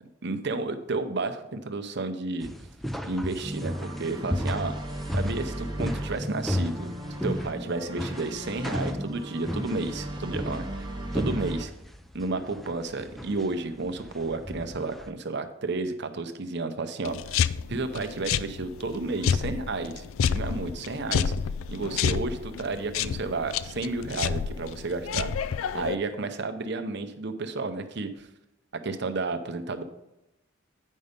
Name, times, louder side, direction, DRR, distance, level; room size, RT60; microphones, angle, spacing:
voice 1, 0.2-2.5 3.0-4.8 5.1-6.9 7.2-10.7 11.1-11.7 12.1-17.4 17.7-20.0 20.3-21.3 21.7-25.3 25.7-28.3 28.8-29.8, right 3 dB, 55° right, 8 dB, 0.7 m, -32 dB
sound 1, 2.4-15.1, equal, ahead, 0.4 m, -34 dB
sound 2, 3.4-11.7, right 1 dB, 20° right, 1.1 m, -36 dB
sound 3, 17.0-25.9, left 7 dB, 75° left, 0.3 m, -29 dB
9.2 x 5.5 x 5.1 m, 0.91 s
head